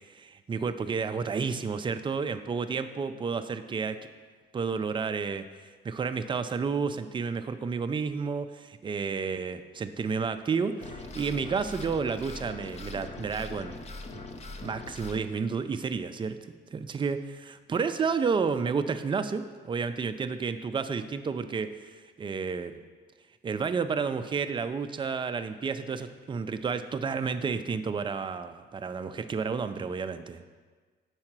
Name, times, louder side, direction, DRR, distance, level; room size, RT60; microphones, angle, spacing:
voice 1, 0.1-4.0 4.5-5.4 5.8-13.8 14.6-16.4 16.7-22.7 23.4-30.4, right 5 dB, 25° right, 9 dB, 0.4 m, -31 dB
sound 1, 10.8-15.2, left 2 dB, 35° left, 0.6 m, -41 dB
4.8 x 4.3 x 5.9 m, 1.5 s
cardioid pair, 90°, 20 cm